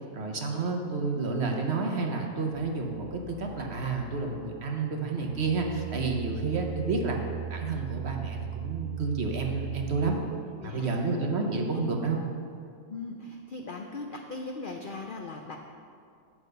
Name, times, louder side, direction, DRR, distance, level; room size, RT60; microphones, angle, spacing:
voice 1, 0.1-7.2 7.5-10.2 10.6-12.3, right 4 dB, 50° right, 2 dB, 1.0 m, -30 dB
sound 1, 2.5-10.2, right 9 dB, 20° right, 0.8 m, -39 dB
voice 2, 10.6-11.0 12.9-15.6, left 3 dB, 70° left, 3 dB, 0.5 m, -39 dB
8.6 x 5.9 x 6.6 m, 2.3 s
omnidirectional pair, 1.6 m